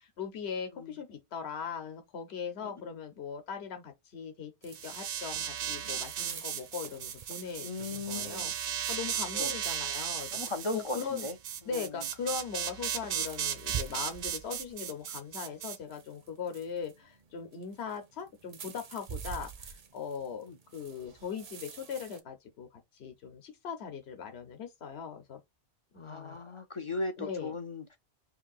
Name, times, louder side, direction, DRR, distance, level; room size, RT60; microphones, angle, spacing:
voice 1, 0.2-10.3 10.7-11.3 11.6-20.5 20.7-22.7 22.9-25.4 25.9-26.4 27.2-27.5, left 6 dB, 70° left, 1.1 m, -40 dB
sound 1, 4.6-22.2, right 7 dB, 45° right, 0.5 m, -48 dB
sound 2, 4.8-15.8, right 9 dB, 90° right, 0.9 m, -36 dB
voice 2, 7.6-8.5 9.3-9.5 10.3-11.4 11.7-12.0 20.4-20.6 26.0-27.8, left 3 dB, 50° left, 0.4 m, -37 dB
3.3 x 2.7 x 3.9 m
omnidirectional pair, 1.1 m